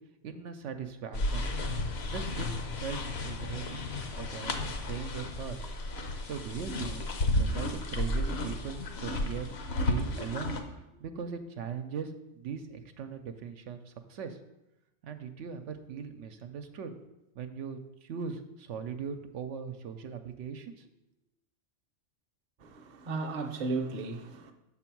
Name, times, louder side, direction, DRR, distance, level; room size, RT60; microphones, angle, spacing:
voice 1, 0.2-1.5 2.1-2.5 2.8-5.6 6.2-9.6 9.9-14.4 15.0-16.9 17.3-20.9, right 6 dB, 80° right, 0.9 m, -40 dB
sound 1, 1.1-10.6, left 1 dB, 65° left, 1.0 m, -33 dB
voice 2, 22.6-24.5, right 3 dB, 45° right, 0.7 m, -35 dB
7.0 x 4.0 x 5.9 m
omnidirectional pair, 1.2 m